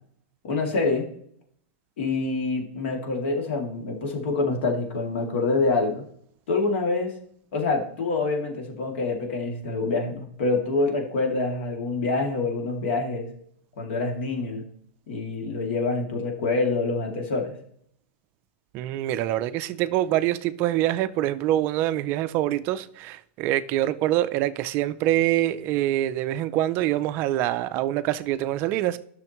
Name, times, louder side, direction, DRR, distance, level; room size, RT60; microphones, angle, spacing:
voice 1, 0.4-1.1 2.0-6.0 6.5-7.1 7.5-13.3 13.8-14.6 15.1-17.6, left 3 dB, 65° left, 2.4 m, -26 dB
voice 2, 18.7-29.0, right 13 dB, 30° right, 0.3 m, -25 dB
12.0 x 6.3 x 3.0 m
supercardioid pair, 160°, 7 cm